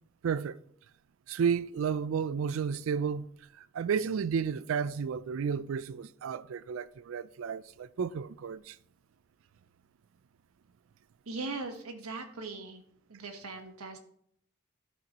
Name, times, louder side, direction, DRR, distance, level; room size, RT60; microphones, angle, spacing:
voice 1, 0.2-0.6 1.3-3.3 3.6-8.8, right 6 dB, 65° right, 0.3 m, -32 dB
voice 2, 11.3-12.8 13.1-14.0, right 3 dB, 85° right, 1.2 m, -39 dB
13.0 x 6.0 x 2.9 m
head